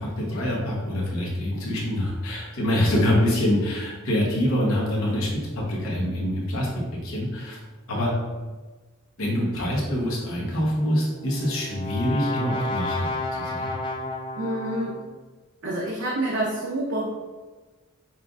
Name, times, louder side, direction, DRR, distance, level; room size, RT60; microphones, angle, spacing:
voice 1, 0.0-5.3 5.5-7.6 7.9-8.1 9.2-13.1 13.4-13.8, equal, 85° left, -4 dB, 1.0 m, -25 dB
Brass instrument, 11.1-15.2, left 2 dB, 25° left, 0.4 m, -32 dB
voice 2, 14.4-15.0 15.6-17.1, right 1 dB, 60° right, -4 dB, 0.6 m, -27 dB
5.5 x 2.5 x 2.4 m, 1.3 s
head